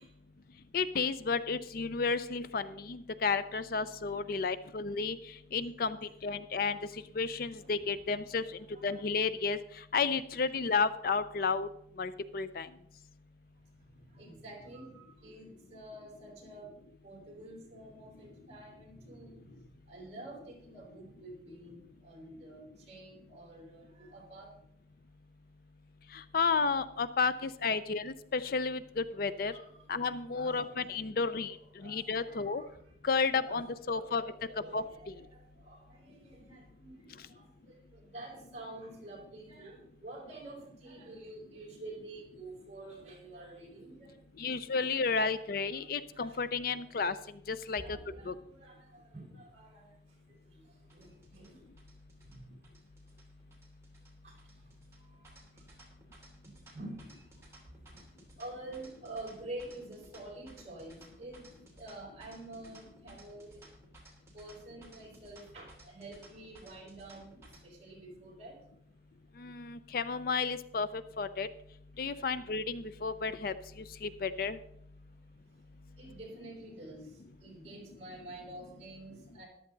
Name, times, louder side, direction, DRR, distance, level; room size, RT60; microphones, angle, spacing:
voice 1, 0.7-5.2 5.5-6.0 6.2-6.8 7.1-9.6 9.9-11.7 12.0-12.7 26.1-29.5 29.9-31.6 31.8-32.6 33.0-34.2 34.7-34.8 44.4-47.2 47.5-48.0 48.3-48.4 69.4-71.5 72.0-73.5 74.0-74.6, left 4 dB, 50° left, 14 dB, 0.5 m, -32 dB
voice 2, 8.7-9.0 14.2-16.7 17.0-19.5 19.9-21.8 22.0-24.5 29.5-29.8 30.3-31.0 31.5-32.7 33.4-44.1 45.1-45.4 45.7-45.9 46.1-46.7 47.8-49.9 50.9-51.6 52.2-52.4 54.2-54.3 55.2-55.3 56.7-57.0 57.9-58.0 58.4-61.4 61.8-63.6 64.3-67.3 67.6-68.5 76.0-77.0 77.4-79.5, right 2 dB, 35° right, -2 dB, 4.8 m, -48 dB
sound 1, 50.9-67.6, right 2 dB, 15° right, 3.0 m, -58 dB
13.5 x 11.5 x 3.9 m, 0.74 s
head